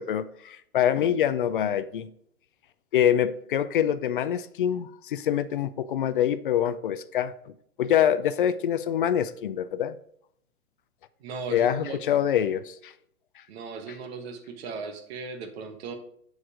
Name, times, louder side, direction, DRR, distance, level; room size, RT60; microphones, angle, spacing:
voice 1, 0.0-2.1 2.9-10.0 11.5-12.9, left 10 dB, 40° left, 0.4 m, -25 dB
voice 2, 11.2-12.0 13.5-16.0, right 4 dB, 45° right, 1.4 m, -37 dB
8.4 x 4.8 x 4.9 m
hypercardioid pair, 125°, 44 cm